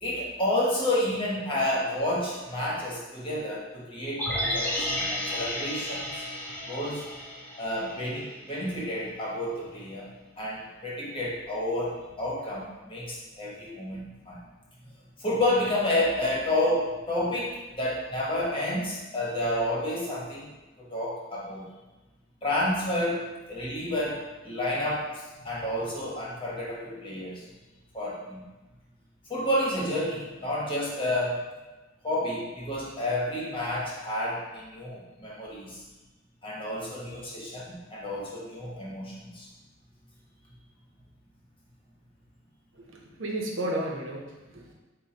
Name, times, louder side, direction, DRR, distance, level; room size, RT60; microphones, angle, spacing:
voice 1, 0.0-6.1 6.7-7.0 7.6-10.1 10.4-14.4 15.2-20.5 20.8-21.6 22.4-27.4 27.9-28.4 29.3-31.5 32.0-35.8 36.4-39.5, left 1 dB, 25° left, -5 dB, 1.0 m, -30 dB
sound 1, 4.2-8.4 8.7-8.8, left 1 dB, 10° left, 0.6 m, -32 dB
voice 2, 42.8-44.7, right 1 dB, 85° right, 0 dB, 0.7 m, -33 dB
3.8 x 2.2 x 4.3 m, 1.1 s
head